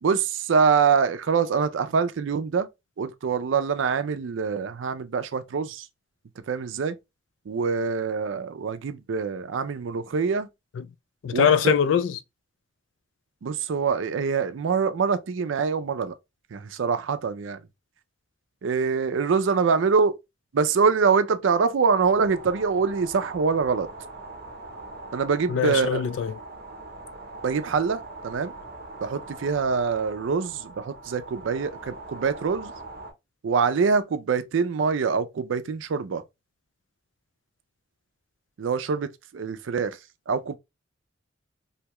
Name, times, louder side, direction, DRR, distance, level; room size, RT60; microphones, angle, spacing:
voice 1, 0.0-2.7 3.0-5.9 6.5-6.9 7.5-10.5 11.3-11.7 13.4-16.1 16.5-17.6 18.6-20.2 20.5-23.9 25.1-26.0 27.4-28.5 29.0-32.7 33.4-36.2 38.6-40.0 40.3-40.6, right 5 dB, 80° right, 0.4 m, -24 dB
voice 2, 11.2-12.1 25.5-26.3, left 8 dB, 75° left, 0.3 m, -22 dB
sound 1, 22.0-33.1, right 2 dB, 55° right, 0.7 m, -42 dB
2.7 x 2.2 x 2.9 m
head